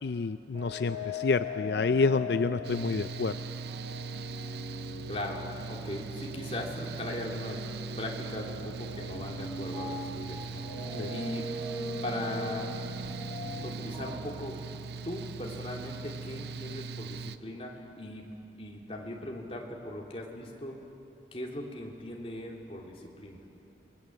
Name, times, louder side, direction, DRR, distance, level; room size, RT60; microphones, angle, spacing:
voice 1, 0.0-3.3 11.0-11.1, left 4 dB, 70° left, 11 dB, 0.5 m, -28 dB
sound 1, 0.5-14.3, left 2 dB, 25° right, 5.7 m, -40 dB
Mechanical fan, 2.6-17.4, right 4 dB, 70° right, 0.6 m, -40 dB
voice 2, 5.1-7.6 8.0-11.5 12.0-12.7 13.6-14.6 15.0-18.3 18.6-20.8 21.3-23.4, left 1 dB, 35° left, -1 dB, 3.1 m, -39 dB
27.5 x 22.0 x 7.8 m, 2.8 s
head